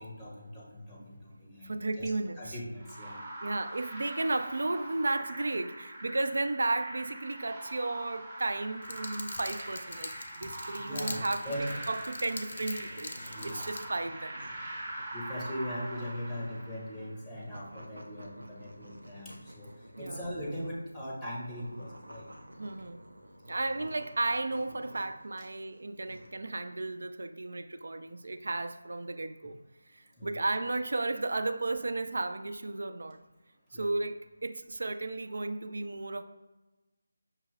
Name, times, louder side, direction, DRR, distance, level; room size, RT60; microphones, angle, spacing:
voice 1, 0.0-2.1 2.4-3.2 10.8-11.8 13.3-13.8 15.1-19.7 20.0-22.3 23.8-23.9 25.4-25.5 30.2-30.4 33.7-33.9 35.3-35.5, equal, ahead, 0.7 m, -40 dB
voice 2, 1.6-2.6 3.4-11.5 11.9-14.5 20.0-20.2 22.6-23.0 23.5-29.6 29.9-33.2 33.7-36.2, right 2 dB, 55° right, 0.3 m, -34 dB
sound 1, 2.8-17.2, right 1 dB, 25° right, 0.9 m, -43 dB
sound 2, 8.8-13.8, left 3 dB, 45° left, 0.4 m, -43 dB
sound 3, 11.4-20.9 21.4-25.3 25.7-26.3, equal, 80° right, 0.7 m, -52 dB
5.5 x 2.3 x 3.2 m
figure-of-eight pair, 160°, 0 cm